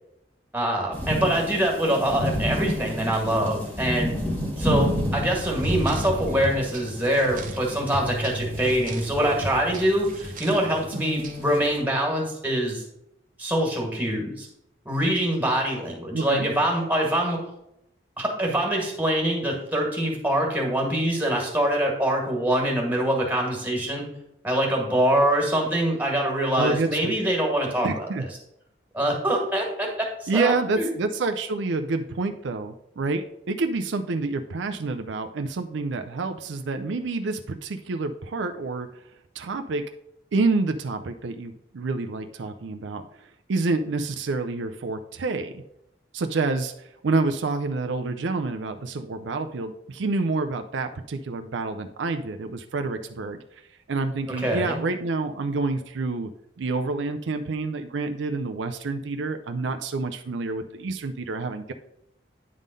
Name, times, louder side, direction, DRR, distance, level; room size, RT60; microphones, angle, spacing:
voice 1, 0.5-4.2 4.6-12.8 13.4-14.5 14.9-17.4 18.2-24.1 24.4-28.1 28.9-29.9 30.2-30.9 54.4-54.8, right 1 dB, 10° right, -1 dB, 1.9 m, -24 dB
sound 1, 0.9-11.8, equal, 10° left, 1.6 m, -31 dB
voice 2, 4.6-5.0 16.1-16.5 26.5-27.1 27.8-28.3 30.3-38.9 39.4-39.9 40.3-45.6 46.1-46.7 47.0-53.4 53.9-56.3 56.6-61.7, right 3 dB, 75° right, 7 dB, 0.5 m, -28 dB
sound 2, 5.5-11.6, right 1 dB, 45° right, 1.0 m, -37 dB
9.5 x 3.7 x 5.2 m, 0.81 s
head